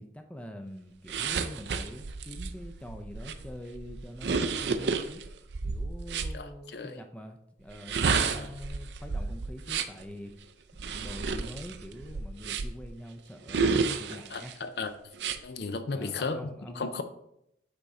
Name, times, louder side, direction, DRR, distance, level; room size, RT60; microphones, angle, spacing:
voice 1, 0.0-5.2 5.6-10.3 10.7-14.6 15.9-16.9, equal, 5° left, 5 dB, 0.5 m, -44 dB
sound 1, 1.1-6.3 7.7-10.0 10.8-12.9 13.5-14.5 15.1-15.4, right 4 dB, 75° right, 0.5 m, -31 dB
voice 2, 6.3-7.0 8.2-8.5 14.1-14.9 15.4-17.0, left 4 dB, 60° left, 10 dB, 0.5 m, -35 dB
8.7 x 4.1 x 3.6 m, 0.79 s
head